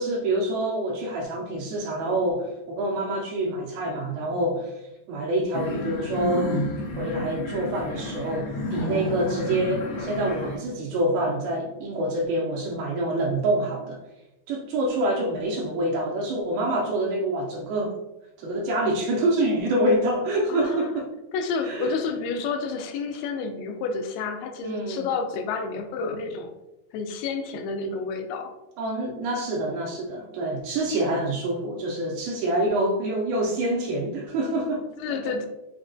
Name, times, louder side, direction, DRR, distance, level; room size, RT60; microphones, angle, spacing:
voice 1, 0.0-4.8 5.1-6.5 7.0-14.0 14.5-18.0 18.4-21.1 21.6-21.9 24.6-25.1 28.8-34.9, right 1 dB, 80° right, -2 dB, 2.2 m, -26 dB
sound 1, 5.5-10.6, left 2 dB, 65° left, 1.4 m, -31 dB
voice 2, 20.5-20.9 21.3-26.5 26.9-28.5 35.0-35.5, left 4 dB, 85° left, 5 dB, 2.4 m, -30 dB
6.0 x 2.1 x 2.5 m, 0.96 s
omnidirectional pair, 4.4 m